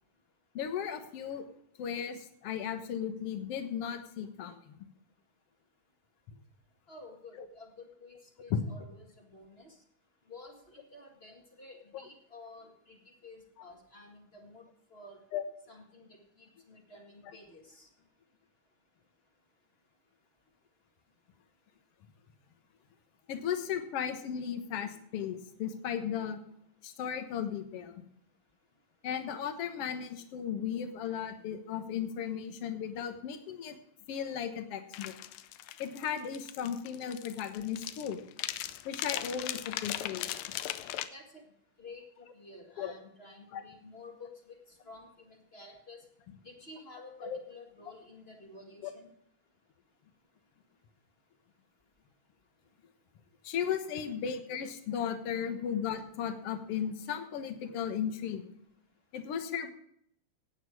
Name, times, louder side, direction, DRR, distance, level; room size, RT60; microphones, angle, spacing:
voice 1, 0.5-1.5 1.8-4.8 7.4-7.5 8.5-8.6 11.9-12.1 15.3-15.4 17.2-17.4 23.3-26.4 26.8-27.9 29.0-33.8 34.1-35.1 35.8-38.2 38.9-40.3 42.8-42.9 43.5-43.6 46.3-46.4 47.2-47.4 48.8-48.9 53.4-58.5 59.1-59.7, left 8 dB, 60° left, 7 dB, 1.8 m, -36 dB
voice 2, 6.9-9.7 10.3-13.0 13.2-15.2 15.7-17.9 41.1-41.4 41.8-44.6 44.8-46.0 46.4-49.1, left 2 dB, 25° left, 1 dB, 1.4 m, -51 dB
sound 1, 34.9-41.1, left 13 dB, 85° left, 2.4 m, -38 dB
16.0 x 9.2 x 4.8 m, 0.70 s
omnidirectional pair, 4.0 m